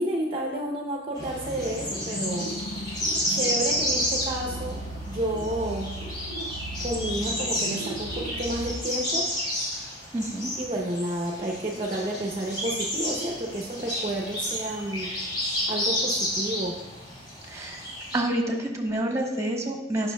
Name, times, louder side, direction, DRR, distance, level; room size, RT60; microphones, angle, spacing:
voice 1, 0.0-2.5 3.3-4.8 5.1-5.9 6.8-9.3 10.6-15.1 15.7-16.7, right 1 dB, 35° right, 0 dB, 0.7 m, -30 dB
sound 1, 1.2-8.8, right 1 dB, 55° left, 1.0 m, -36 dB
sound 2, 1.2-18.2, equal, 30° left, 2.2 m, -31 dB
voice 2, 10.1-10.5 17.5-17.8 18.1-20.1, right 1 dB, 15° right, 1 dB, 1.3 m, -28 dB
16.5 x 6.0 x 2.3 m, 1.1 s
head